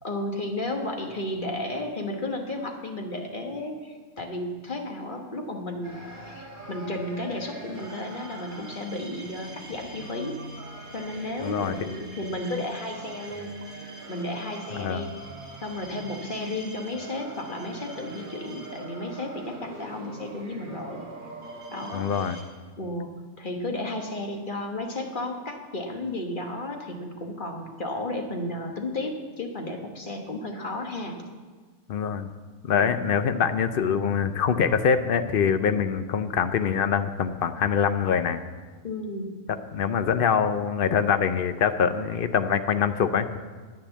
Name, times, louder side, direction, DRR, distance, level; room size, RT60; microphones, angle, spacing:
voice 1, 0.0-6.0 6.3-10.4 10.9-13.5 14.1-15.1 15.6-21.0 21.7-22.1 22.8-31.2 32.7-33.1 38.8-39.4, left 1 dB, 35° left, 2 dB, 1.4 m, -33 dB
sound 1, 5.8-22.4, right 2 dB, 35° right, 2.0 m, -42 dB
voice 2, 11.4-11.7 14.7-15.1 21.9-22.4 31.9-32.3 32.6-38.4 39.7-43.3, left 7 dB, 55° left, 10 dB, 0.6 m, -24 dB
10.5 x 9.1 x 7.2 m, 1.4 s
omnidirectional pair, 1.5 m